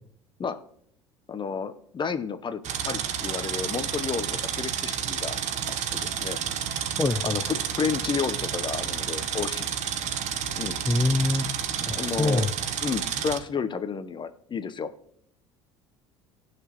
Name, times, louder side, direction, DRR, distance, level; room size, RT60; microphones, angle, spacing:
voice 1, 1.3-5.4 5.9-6.4 7.2-9.7 10.5-10.8 11.8-12.5 12.8-14.9, left 6 dB, 30° left, 11 dB, 1.0 m, -31 dB
sound 1, 2.6-13.4, right 8 dB, 50° right, 1.1 m, -30 dB
voice 2, 7.0-7.4 10.9-11.5 11.9-12.5, left 2 dB, 15° left, 8 dB, 0.6 m, -24 dB
18.5 x 6.2 x 3.1 m, 0.68 s
hypercardioid pair, 70°, 15 cm